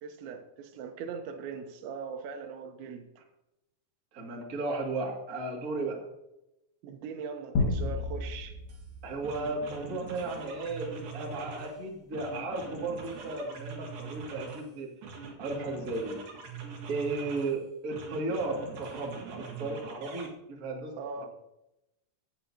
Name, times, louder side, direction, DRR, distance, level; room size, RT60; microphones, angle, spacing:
voice 1, 0.0-3.0 6.8-8.6 21.0-21.3, right 5 dB, 80° right, 7 dB, 3.2 m, -40 dB
voice 2, 4.1-6.0 9.0-14.9 15.4-16.2 16.9-21.2, right 2 dB, 35° right, -1 dB, 1.5 m, -35 dB
sound 1, 7.5-10.4, left 3 dB, 55° left, 2.4 m, -33 dB
sound 2, 8.7-8.8 9.2-11.8 12.1-14.7 15.0-17.5 17.9-20.3, right 5 dB, 60° right, 3.3 m, -43 dB
16.0 x 9.7 x 2.8 m, 0.90 s
omnidirectional pair, 5.2 m